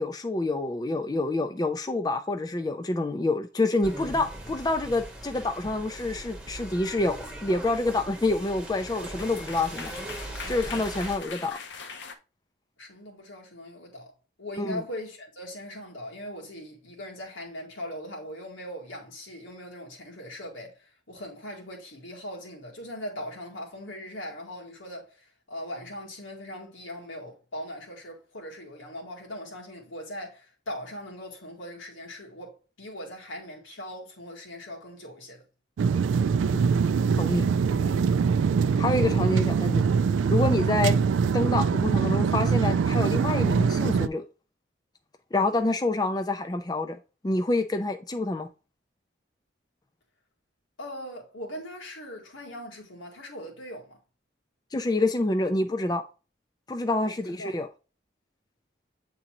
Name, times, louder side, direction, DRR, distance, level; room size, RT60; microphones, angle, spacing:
voice 1, 0.0-9.9 10.5-11.6 14.6-14.8 36.5-36.6 37.2-37.4 38.8-39.9 40.3-41.0 41.3-44.2 45.3-47.0 47.2-48.5 54.7-56.0 56.7-57.7, left 2 dB, 20° left, 0.4 m, -27 dB
sound 1, 3.8-11.2, right 1 dB, 5° right, 0.9 m, -40 dB
sound 2, 8.9-12.2, left 5 dB, 65° left, 0.7 m, -41 dB
voice 2, 12.8-14.1 14.4-35.4 50.8-54.0 57.0-57.5, left 1 dB, 90° left, 1.9 m, -40 dB
sound 3, 35.8-44.1, right 6 dB, 85° right, 0.3 m, -23 dB
8.4 x 3.8 x 2.9 m
head